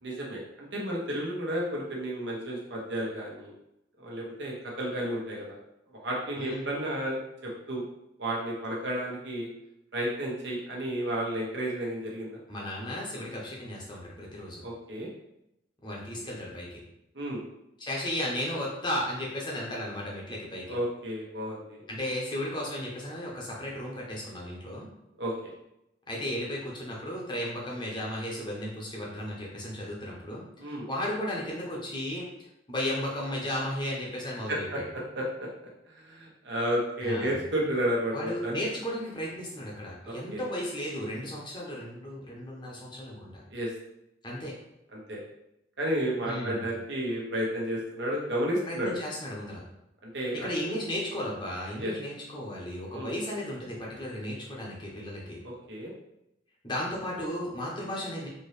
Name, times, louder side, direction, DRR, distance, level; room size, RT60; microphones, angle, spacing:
voice 1, 0.0-3.5 4.0-5.6 5.9-7.8 8.2-9.5 9.9-12.4 14.6-15.1 17.1-17.4 20.7-21.8 25.2-25.3 30.6-30.9 34.5-34.8 35.1-35.5 35.9-38.6 40.0-40.4 43.5-43.7 44.9-45.2 45.8-48.9 50.0-50.5 51.8-51.9 52.9-53.1 55.4-55.9, equal, 65° right, -3 dB, 1.1 m, -32 dB
voice 2, 12.5-14.6 15.8-16.8 17.8-20.7 21.9-24.9 26.1-34.7 37.0-37.4 38.1-43.4 44.2-44.5 46.2-46.7 48.7-49.6 50.3-55.4 56.6-58.3, left 1 dB, 25° left, -3 dB, 0.9 m, -35 dB
4.4 x 2.9 x 3.2 m, 0.85 s
head